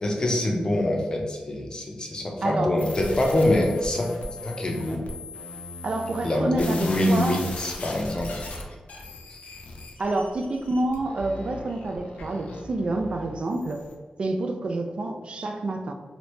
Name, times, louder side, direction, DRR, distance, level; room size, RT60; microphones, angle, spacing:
voice 1, 0.0-4.1 4.4-5.0 6.2-8.5, left 1 dB, 35° left, 1 dB, 0.6 m, -25 dB
voice 2, 2.4-2.8 5.8-7.5 10.0-13.8 14.2-15.9, right 2 dB, 55° right, 5 dB, 0.3 m, -28 dB
sound 1, 2.8-13.9, left 2 dB, 90° left, 0.5 m, -38 dB
3.0 x 2.6 x 3.1 m, 1.4 s
wide cardioid pair, 100°, 2 cm